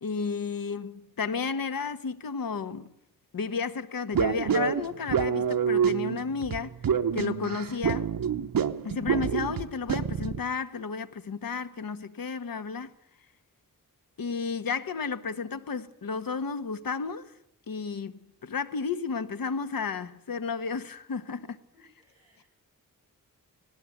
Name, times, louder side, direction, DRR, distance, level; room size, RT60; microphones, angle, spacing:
voice 1, 0.0-2.9 3.3-6.7 7.1-8.1 8.8-12.9 14.2-17.3 17.7-21.9, left 5 dB, 75° left, 1.4 m, -32 dB
sound 1, 4.1-10.4, right 7 dB, 75° right, 1.1 m, -27 dB
voice 2, 21.7-22.5, equal, 10° right, 7.4 m, -64 dB
18.5 x 18.0 x 9.3 m
wide cardioid pair, 120°, 34 cm